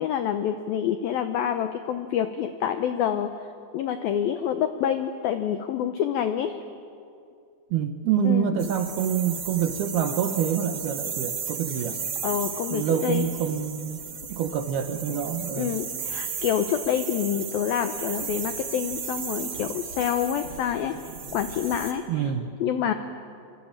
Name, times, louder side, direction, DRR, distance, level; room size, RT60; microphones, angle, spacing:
voice 1, 0.0-3.3 3.7-6.6 8.2-8.5 12.2-13.3 15.1-15.2 15.6-20.9 21.3-22.3 22.6-22.9, left 9 dB, 85° left, 9 dB, 2.1 m, -27 dB
voice 2, 7.7-12.0 12.7-14.0 14.3-15.8 22.1-22.5, right 8 dB, 70° right, 7 dB, 2.7 m, -26 dB
sound 1, 8.6-21.9, right 6 dB, 40° right, 3.3 m, -35 dB
25.5 x 25.0 x 8.9 m, 2.4 s
omnidirectional pair, 5.5 m